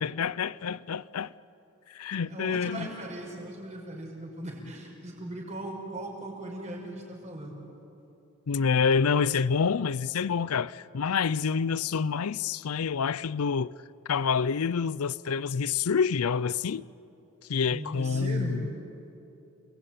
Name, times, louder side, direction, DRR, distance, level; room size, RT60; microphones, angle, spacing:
voice 1, 0.0-1.3 1.9-2.9 8.5-13.7 14.1-16.8 17.5-18.7, left 6 dB, 85° left, 0.5 m, -27 dB
voice 2, 2.1-7.7 17.7-18.8, right 1 dB, 30° right, 5.8 m, -38 dB
29.5 x 21.0 x 9.2 m
head